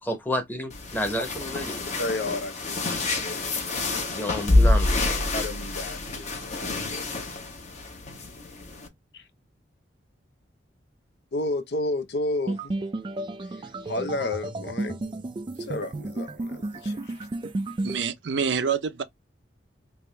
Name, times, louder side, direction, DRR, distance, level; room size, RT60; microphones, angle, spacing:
voice 1, 0.0-1.8 4.1-5.4, equal, 10° left, 0.9 m, -30 dB
sound 1, 0.7-8.9, left 2 dB, 40° left, 0.9 m, -27 dB
voice 2, 2.0-4.5 5.3-7.1 9.1-9.3 11.3-12.7 13.4-15.0 15.6-17.3, left 2 dB, 65° left, 0.6 m, -33 dB
sound 2, 12.5-18.0, right 2 dB, 25° right, 0.3 m, -32 dB
voice 3, 17.8-19.0, right 6 dB, 75° right, 0.6 m, -26 dB
3.4 x 2.5 x 3.2 m
head